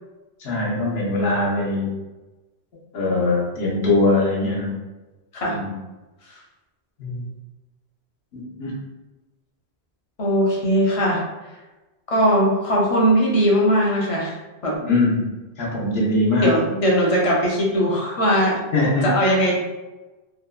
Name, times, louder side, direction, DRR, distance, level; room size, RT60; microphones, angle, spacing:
voice 1, 0.4-1.9 2.9-4.8 5.4-5.7 7.0-7.3 8.3-8.8 14.7-16.5 18.7-19.1, left 2 dB, 70° left, -4 dB, 1.0 m, -22 dB
voice 2, 10.2-11.2 12.1-14.3 14.6-14.8 16.4-18.6 19.0-19.6, equal, 40° left, -3 dB, 0.5 m, -19 dB
2.8 x 2.2 x 2.3 m, 1.1 s
omnidirectional pair, 1.1 m